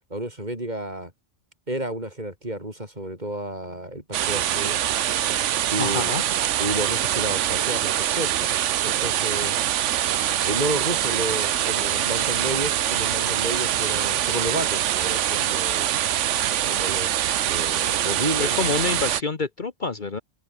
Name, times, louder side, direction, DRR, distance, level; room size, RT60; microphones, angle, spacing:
voice 1, 0.1-1.1 1.7-4.8 5.7-6.1 6.6-8.5 8.8-9.6 10.5-15.9 16.6-18.6, right 1 dB, 35° right, 6.3 m, -31 dB
sound 1, 4.1-19.2, right 11 dB, 85° right, 1.1 m, -24 dB
voice 2, 5.8-6.2 18.4-20.2, left 3 dB, 45° left, 1.4 m, -27 dB
open air
omnidirectional pair, 1.2 m